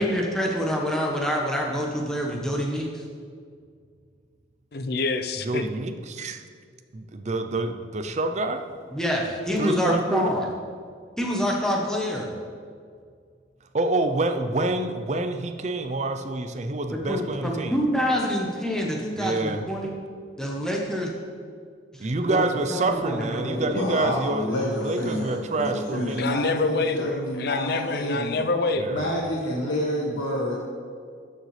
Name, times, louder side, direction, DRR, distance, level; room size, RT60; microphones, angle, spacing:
voice 1, 0.0-2.9 8.9-10.5 11.2-12.3 16.9-20.0 20.4-21.1 21.9-22.4 22.7-23.7, equal, 5° left, -2 dB, 0.9 m, -26 dB
voice 2, 4.7-5.6 26.2-29.0, left 3 dB, 55° left, 8 dB, 0.5 m, -26 dB
voice 3, 5.4-6.4 6.9-8.7 9.6-10.3 13.7-17.8 19.2-19.6 22.0-26.3 28.8-29.1, right 2 dB, 35° right, 8 dB, 0.5 m, -27 dB
voice 4, 23.5-28.4 28.9-30.6, equal, 85° left, -3 dB, 1.3 m, -28 dB
13.0 x 6.6 x 3.2 m, 2.1 s
head